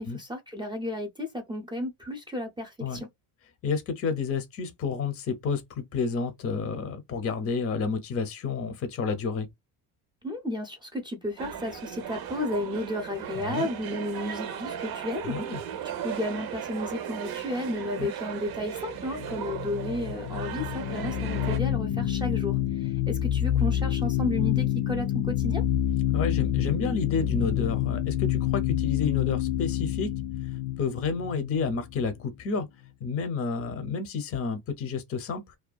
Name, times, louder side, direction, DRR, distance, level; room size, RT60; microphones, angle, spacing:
voice 1, 0.0-3.1 10.2-15.4 16.0-25.6, left 1 dB, 10° right, 0.5 m, -33 dB
voice 2, 3.6-9.5 13.4-13.7 15.2-15.6 18.0-18.1 21.9-22.1 26.1-30.1 30.8-32.7 33.0-35.6, left 5 dB, 35° left, 0.6 m, -30 dB
sound 1, 11.4-21.6, right 9 dB, 60° right, 0.7 m, -37 dB
sound 2, 19.1-32.3, left 11 dB, 75° left, 0.5 m, -28 dB
2.5 x 2.3 x 2.2 m
cardioid pair, 130°, 43 cm